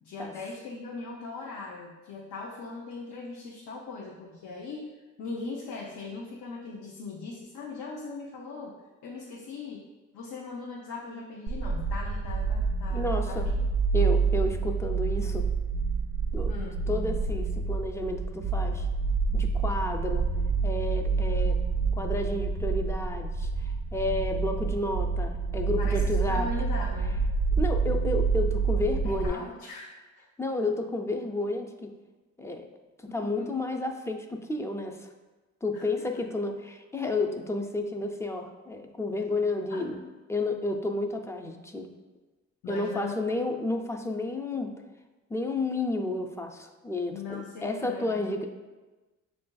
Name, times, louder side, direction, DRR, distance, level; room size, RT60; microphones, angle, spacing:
voice 1, 0.0-4.9 5.2-9.9 10.1-13.6 16.5-16.8 25.8-27.2 29.0-30.3 33.1-33.5 35.7-35.8 36.2-36.3 39.7-39.8 42.6-43.1 47.1-48.3, left 3 dB, 80° left, -2 dB, 0.6 m, -39 dB
sound 1, 11.5-29.3, right 4 dB, 75° right, 0.5 m, -28 dB
voice 2, 12.9-13.6 13.9-15.5 16.3-16.6 16.9-18.9 19.3-20.3 20.6-21.6 21.9-26.5 27.6-29.4 30.4-31.9 32.4-32.7 33.0-35.1 35.6-40.0 40.3-41.9 42.7-44.7 45.3-48.5, left 2 dB, 10° left, 4 dB, 0.3 m, -31 dB
6.6 x 2.5 x 2.3 m, 1.2 s
cardioid pair, 90°, 30 cm